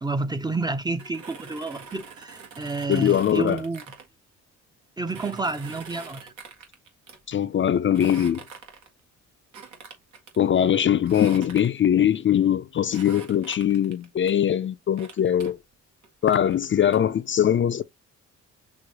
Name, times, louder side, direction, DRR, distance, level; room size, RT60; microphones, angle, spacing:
voice 1, 0.0-3.8 5.0-6.3, right 3 dB, 15° right, 0.6 m, -29 dB
sound 1, 0.9-4.1 5.1-7.2 7.9-9.0 9.5-10.4 11.1-11.9 12.9-14.3 15.0-15.5 16.0-17.0, right 6 dB, 75° right, 1.7 m, -44 dB
voice 2, 2.9-3.6 7.3-8.4 10.4-15.6 16.2-17.8, left 10 dB, 40° left, 0.5 m, -21 dB
6.2 x 2.5 x 2.9 m
cardioid pair, 90°, 30 cm